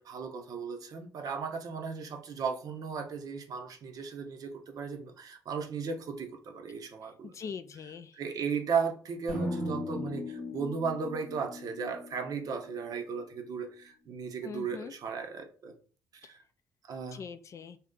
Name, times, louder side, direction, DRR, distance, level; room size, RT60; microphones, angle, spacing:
voice 1, 0.0-7.3 8.1-15.7 16.1-16.4 16.9-17.2, right 5 dB, 55° right, 0.7 m, -36 dB
voice 2, 7.2-8.2 14.4-14.9 17.1-17.8, left 6 dB, 45° left, 0.3 m, -42 dB
sound 1, 9.3-13.4, left 1 dB, 85° right, 1.4 m, -38 dB
2.7 x 2.3 x 3.6 m
hypercardioid pair, 55°, 7 cm